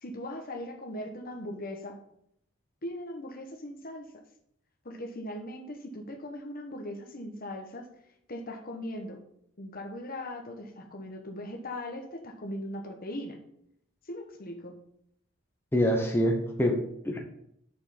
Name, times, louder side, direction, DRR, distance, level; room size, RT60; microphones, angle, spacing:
voice 1, 0.0-2.0 2.8-4.1 4.8-7.8 8.3-9.2 9.6-13.4 14.1-14.8, left 1 dB, 50° left, 4 dB, 1.1 m, -39 dB
voice 2, 15.7-17.2, equal, 10° left, 2 dB, 1.0 m, -26 dB
6.6 x 5.3 x 5.7 m, 0.73 s
head